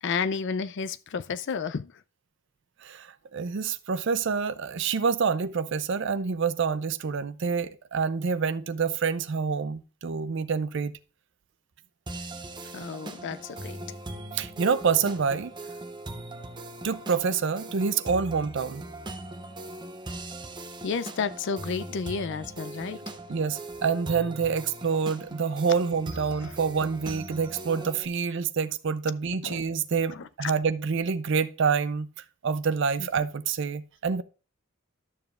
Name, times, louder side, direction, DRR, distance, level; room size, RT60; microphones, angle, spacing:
voice 1, 0.0-1.9 12.7-13.8 20.8-23.0 26.4-26.5 29.4-29.7 30.1-30.5 33.0-33.1, left 5 dB, 60° left, 0.4 m, -31 dB
voice 2, 2.8-10.9 14.3-15.5 16.8-18.8 23.3-32.1 32.4-34.2, right 5 dB, 60° right, 0.5 m, -27 dB
sound 1, 12.1-28.1, right 2 dB, 20° right, 0.7 m, -40 dB
12.5 x 6.9 x 2.4 m
head